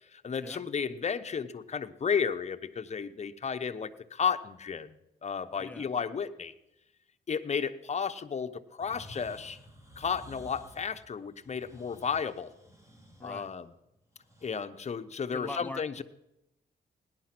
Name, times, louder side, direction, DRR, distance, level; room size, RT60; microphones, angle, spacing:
voice 1, 0.1-6.5 7.3-9.6 10.0-12.5 13.2-13.7 14.4-16.0, left 6 dB, 40° left, 9 dB, 0.9 m, -33 dB
voice 2, 5.6-5.9 13.2-13.5 15.3-16.0, left 2 dB, 10° left, 9 dB, 0.8 m, -42 dB
sound 1, 8.8-14.5, equal, 20° right, 2.5 m, -53 dB
17.5 x 10.5 x 6.0 m, 0.87 s
cardioid pair, 85°, 17 cm